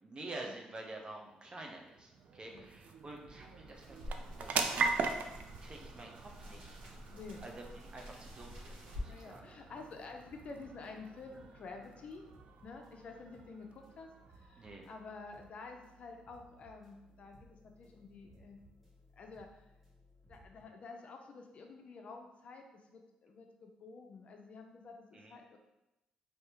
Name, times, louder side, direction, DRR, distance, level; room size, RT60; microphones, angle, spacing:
voice 1, 0.0-4.7 5.6-6.8 7.4-9.4 14.6-14.9 25.1-25.3, right 2 dB, 35° right, 1 dB, 0.7 m, -48 dB
sound 1, 1.1-16.0, right 4 dB, 65° right, 0.3 m, -42 dB
sound 2, 3.2-20.6, right 1 dB, ahead, 1.4 m, -63 dB
sound 3, 3.7-9.1, left 1 dB, 85° right, 1.4 m, -48 dB
voice 2, 7.1-7.4 9.0-12.2 12.6-18.6 19.1-19.6 20.3-25.6, left 4 dB, 55° left, 3 dB, 0.5 m, -50 dB
3.4 x 2.7 x 2.9 m, 0.95 s
cardioid pair, 80°, 3 cm